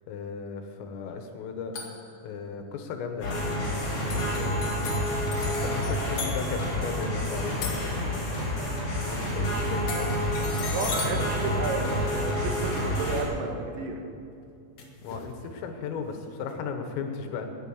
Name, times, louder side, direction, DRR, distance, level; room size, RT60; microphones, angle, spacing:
voice 1, 0.1-1.7 2.2-4.7 5.4-10.2 10.8-11.3 15.0-17.5, left 5 dB, 85° left, 6 dB, 3.8 m, -36 dB
sound 1, 1.7-2.1 3.6-3.8 4.1-8.6 9.9-12.4 14.8-15.4, left 4 dB, 60° left, 2.1 m, -38 dB
sound 2, 3.2-13.2, equal, 40° left, 4.4 m, -29 dB
voice 2, 10.6-14.0, right 3 dB, 70° right, 2 dB, 3.3 m, -32 dB
12.5 x 10.0 x 7.1 m, 2.5 s
omnidirectional pair, 5.8 m